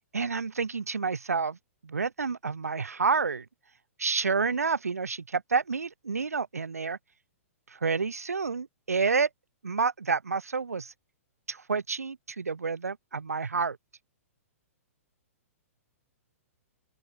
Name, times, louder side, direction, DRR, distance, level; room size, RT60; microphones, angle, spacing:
voice 1, 0.1-1.6 1.8-3.4 4.0-7.0 7.7-9.3 9.6-10.9 11.5-13.8, right 5 dB, 80° right, 0.9 m, -29 dB
open air
figure-of-eight pair, 115°, 8 cm